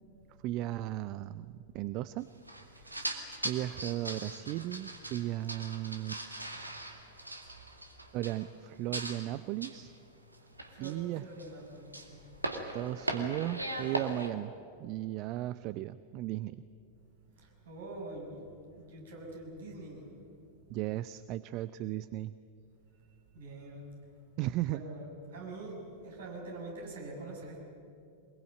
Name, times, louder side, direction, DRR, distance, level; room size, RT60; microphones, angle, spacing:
voice 1, 0.4-2.3 2.8-3.1 3.4-6.2 8.1-9.9 10.8-11.3 12.7-14.5 14.8-16.6 20.7-22.3 24.4-24.8, right 15 dB, 40° right, 15 dB, 0.5 m, -36 dB
sound 1, 2.5-8.7 8.9-9.3 9.6-10.0 10.3-11.6 11.9-14.3, right 1 dB, 85° right, 2.2 m, -40 dB
voice 2, 10.7-12.2 17.4-18.5 18.8-20.1 23.3-23.9 24.7-25.0 25.3-27.6, right 2 dB, 60° right, 0 dB, 6.5 m, -44 dB
24.0 x 21.5 x 9.2 m, 2.6 s
figure-of-eight pair, 90°, 0 cm